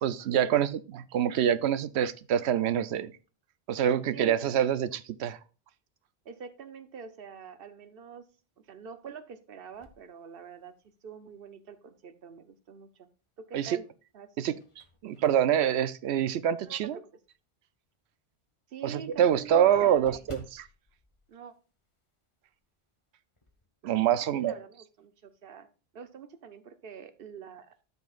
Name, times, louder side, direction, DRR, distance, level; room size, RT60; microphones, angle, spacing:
voice 1, 0.0-0.7 1.1-3.1 3.7-5.4 13.5-13.8 14.4-14.5 15.0-17.0 18.8-20.7 23.8-24.5, right 9 dB, 85° right, 15 dB, 0.9 m, -26 dB
voice 2, 6.2-8.2 8.7-10.7 11.0-13.1 13.4-13.8 14.1-14.3 16.6-17.0 18.7-20.3 21.3-21.5 24.1-25.7 25.9-27.8, right 7 dB, 65° right, 11 dB, 1.0 m, -45 dB
sound 1, 9.7-11.1 11.6-11.7 13.2-13.7 14.2-16.8 17.3-17.4 17.8-17.9 18.1-18.2 18.5-22.3 22.5-22.8 23.1-23.7, left 2 dB, 30° left, 1.1 m, -55 dB
13.0 x 5.6 x 2.4 m, 0.34 s
omnidirectional pair, 1.1 m